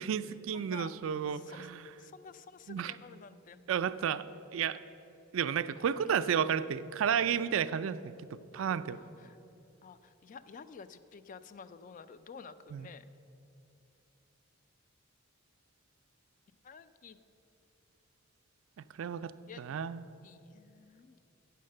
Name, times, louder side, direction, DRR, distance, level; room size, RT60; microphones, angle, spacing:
voice 1, 0.0-1.8 2.7-2.9 3.7-4.3 4.5-4.8 5.3-9.0 12.7-12.9 18.8-19.3 19.6-20.0, right 8 dB, 75° right, 13 dB, 0.3 m, -32 dB
voice 2, 0.5-0.9 1.3-1.7 2.0-3.6 5.8-6.3 8.9-9.4 9.8-13.1 16.6-17.2 19.5-19.8 20.2-21.2, left 5 dB, 40° left, 13 dB, 0.3 m, -51 dB
8.6 x 6.5 x 6.5 m, 2.8 s
head